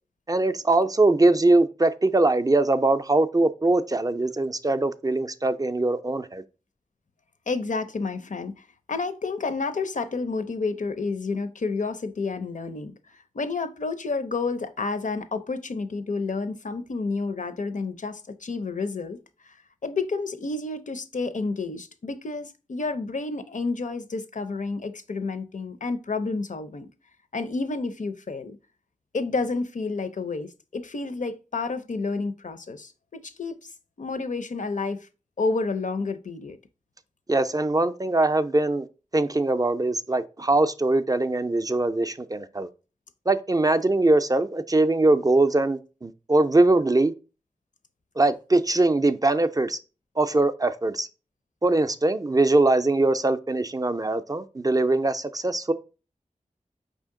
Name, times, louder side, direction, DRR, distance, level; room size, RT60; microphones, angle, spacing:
voice 1, 0.3-6.4 37.3-38.9 39.1-42.7 43.3-47.1 48.2-49.8 50.2-51.1 51.6-55.7, right 2 dB, 25° right, 0.3 m, -22 dB
voice 2, 7.5-12.9 13.3-19.2 19.4-19.6 19.8-26.9 27.3-28.6 29.1-33.7 34.0-35.1 35.4-36.6, left 3 dB, 65° left, 0.5 m, -30 dB
5.0 x 2.7 x 3.6 m
wide cardioid pair, 70°, 14 cm